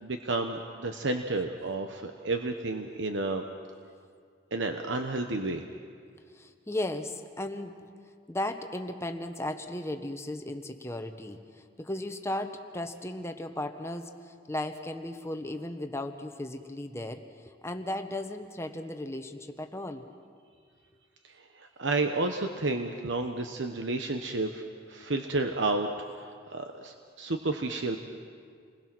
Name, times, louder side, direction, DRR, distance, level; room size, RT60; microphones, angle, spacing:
voice 1, 0.0-3.4 4.5-5.7 21.6-24.6 24.9-25.9 26.2-28.0, right 2 dB, 85° right, 5 dB, 1.1 m, -31 dB
voice 2, 6.3-7.9 8.3-20.0, left 1 dB, 15° left, 6 dB, 1.1 m, -36 dB
29.0 x 20.5 x 6.2 m, 2.1 s
head